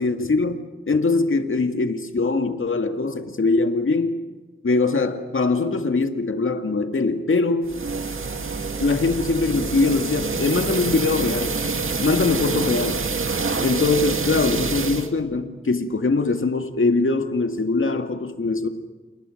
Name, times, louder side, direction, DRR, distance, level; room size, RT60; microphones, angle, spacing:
voice 1, 0.0-4.2 4.6-7.8 8.8-11.6 12.0-13.1 13.6-18.7, left 3 dB, 80° left, 2.0 m, -22 dB
sound 1, 7.6-15.1, right 4 dB, 85° right, 2.1 m, -26 dB
29.5 x 29.0 x 6.5 m
wide cardioid pair, 50°, 21 cm